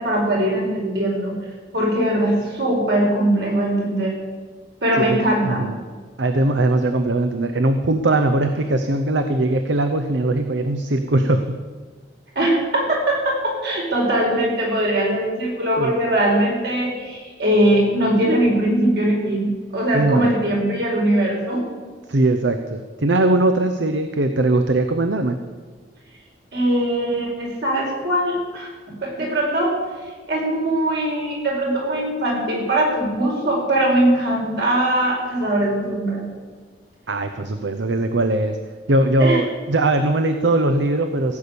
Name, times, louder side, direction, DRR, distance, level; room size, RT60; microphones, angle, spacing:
voice 1, 0.0-1.3 1.7-4.1 4.8-5.6 12.3-21.6 26.5-28.7 29.0-29.7 30.3-36.2 39.2-39.4, right 1 dB, 60° right, -2 dB, 4.6 m, -21 dB
voice 2, 5.4-5.8 6.2-11.4 15.8-15.9 19.9-20.3 22.1-25.4 37.1-38.6 38.9-41.4, right 2 dB, 80° right, 8 dB, 0.8 m, -20 dB
16.0 x 8.5 x 6.9 m, 1.4 s
head